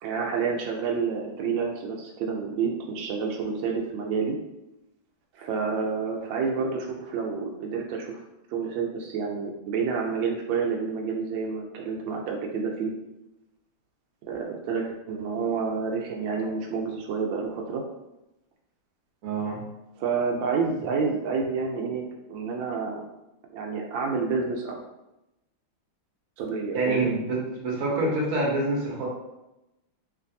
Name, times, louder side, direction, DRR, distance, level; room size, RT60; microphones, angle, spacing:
voice 1, 0.0-4.4 5.4-8.2 8.5-12.9 14.3-17.8 20.0-23.0 23.5-24.8 26.4-27.1, right 5 dB, 75° right, 1 dB, 1.3 m, -29 dB
voice 2, 19.2-19.6 26.7-29.1, right 2 dB, 60° right, -3 dB, 0.9 m, -26 dB
3.2 x 2.5 x 2.6 m, 0.93 s
omnidirectional pair, 2.3 m